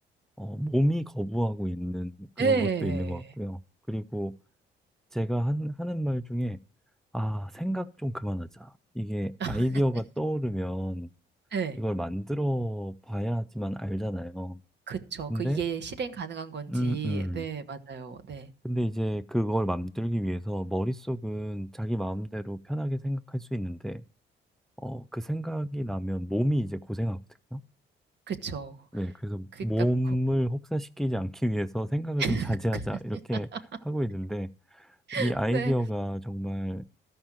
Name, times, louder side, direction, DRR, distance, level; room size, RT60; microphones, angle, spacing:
voice 1, 0.4-3.6 3.9-4.3 5.1-6.6 7.1-11.1 11.7-14.6 15.3-15.6 16.7-17.4 18.6-24.0 24.8-27.2 27.5-27.6 28.9-33.5 33.8-36.8, equal, ahead, 0.5 m, -30 dB
voice 2, 2.4-3.2 9.4-9.6 11.5-11.8 14.9-18.5 28.3-28.8 29.5-29.7 32.2-32.5 35.1-35.7, right 5 dB, 60° right, 1.4 m, -31 dB
13.5 x 5.4 x 7.5 m
cardioid pair, 90°, 20 cm